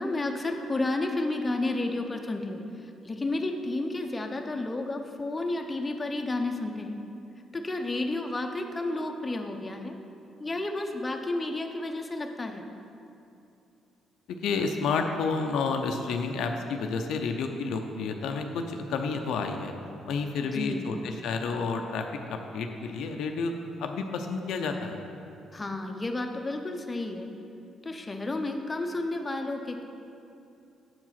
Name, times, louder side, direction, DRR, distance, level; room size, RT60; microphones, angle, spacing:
voice 1, 0.0-2.6 3.0-7.0 7.5-9.9 10.4-12.6 20.4-20.9 25.5-27.3 27.8-29.8, left 2 dB, 20° left, 4 dB, 0.7 m, -31 dB
voice 2, 14.3-19.7 20.1-23.5 23.8-25.0, left 4 dB, 80° left, 4 dB, 0.5 m, -30 dB
7.6 x 4.7 x 5.8 m, 2.7 s
cardioid pair, 90°, 0 cm